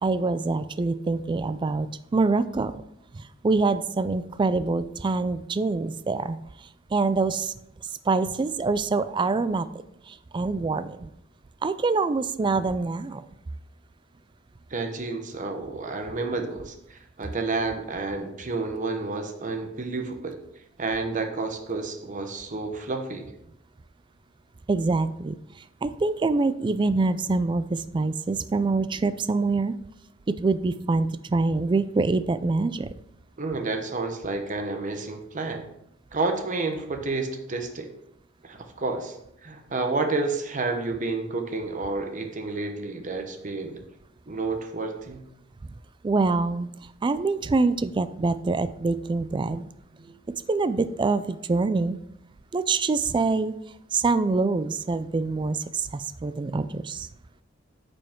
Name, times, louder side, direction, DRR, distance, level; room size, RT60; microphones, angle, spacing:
voice 1, 0.0-2.8 3.1-6.4 6.9-7.5 8.1-9.7 10.1-11.1 11.6-13.2 24.7-25.3 25.8-29.7 30.4-32.9 46.0-46.7 47.0-49.7 50.5-52.0 52.5-53.5 53.9-57.1, right 3 dB, 25° right, 14 dB, 0.3 m, -25 dB
voice 2, 14.7-20.4 20.8-23.3 33.4-35.6 36.1-37.9 38.4-39.2 39.4-43.8 44.3-45.2 50.0-50.1, right 3 dB, 40° right, 5 dB, 0.9 m, -30 dB
8.9 x 5.2 x 3.6 m, 0.80 s
head